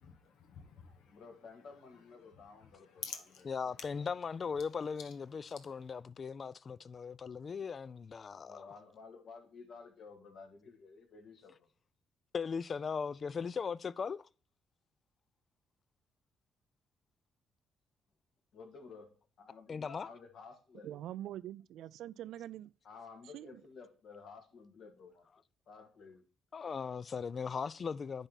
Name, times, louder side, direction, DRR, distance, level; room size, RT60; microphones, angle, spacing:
voice 1, 0.0-6.0, left 7 dB, 85° left, 1.2 m, -52 dB
voice 2, 1.1-3.0 3.7-3.8 7.4-7.5 8.3-11.7 18.5-21.0 22.8-25.3 25.7-26.2, left 4 dB, 65° left, 2.0 m, -53 dB
voice 3, 3.5-5.0 5.7-8.7 12.3-14.3 19.7-20.1 26.5-28.3, left 6 dB, 45° left, 0.3 m, -38 dB
voice 4, 20.8-22.7 23.3-23.6, right 12 dB, 80° right, 0.3 m, -44 dB
10.0 x 3.4 x 4.0 m
cardioid pair, 90°, 0 cm